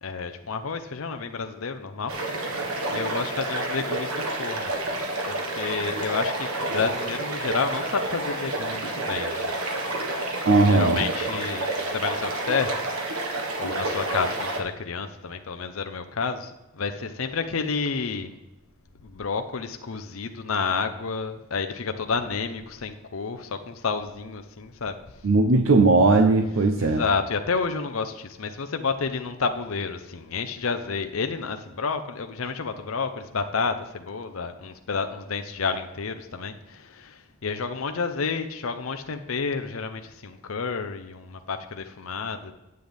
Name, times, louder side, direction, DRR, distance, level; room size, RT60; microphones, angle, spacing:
voice 1, 0.0-4.7 5.2-9.6 10.6-18.4 19.0-25.0 26.8-42.5, left 5 dB, 70° left, 7 dB, 0.7 m, -30 dB
sound 1, 2.1-14.6, right 2 dB, 85° right, 1.5 m, -29 dB
voice 2, 10.5-11.0 25.2-27.0, right 3 dB, 65° right, 6 dB, 0.7 m, -18 dB
9.5 x 7.8 x 3.4 m, 0.98 s
head